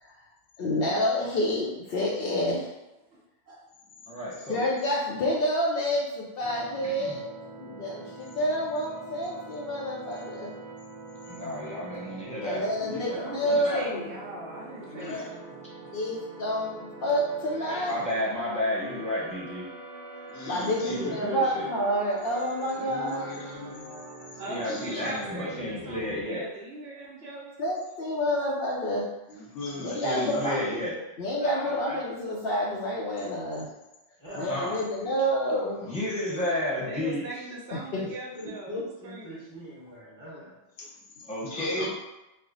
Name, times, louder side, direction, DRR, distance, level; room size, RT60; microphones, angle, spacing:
voice 1, 0.6-2.7 4.5-7.3 7.6-10.5 12.4-14.0 15.9-18.0 20.5-23.4 27.6-29.1 29.8-30.6 31.2-33.7 34.3-35.8 37.7-38.0, equal, 65° left, -3 dB, 0.7 m, -28 dB
voice 2, 3.1-3.6 13.1-15.9 24.4-27.5 36.8-39.4, right 1 dB, 65° right, -3 dB, 0.9 m, -40 dB
voice 3, 4.1-4.7 5.2-5.3 6.8-7.2 11.3-12.6 13.0-13.9 15.1-15.3 17.7-19.7 20.8-21.6 24.5-26.4 29.7-31.0 31.4-32.0 34.5-34.8 35.8-37.2 41.3-41.9, left 1 dB, 5° left, -8 dB, 0.9 m, -32 dB
sound 1, 6.4-26.2, right 2 dB, 40° right, 0.5 m, -44 dB
voice 4, 11.2-11.5 12.8-13.1 14.9-15.3 17.6-18.1 20.3-21.3 22.7-24.0 24.3-25.3 29.3-30.6 33.2-33.3 34.4-35.2 35.7-36.6 40.8-41.9, left 2 dB, 85° left, -3 dB, 1.1 m, -40 dB
voice 5, 34.2-34.8 38.3-40.6, left 1 dB, 25° right, -9 dB, 1.2 m, -40 dB
3.2 x 2.0 x 3.8 m, 0.96 s
omnidirectional pair, 1.2 m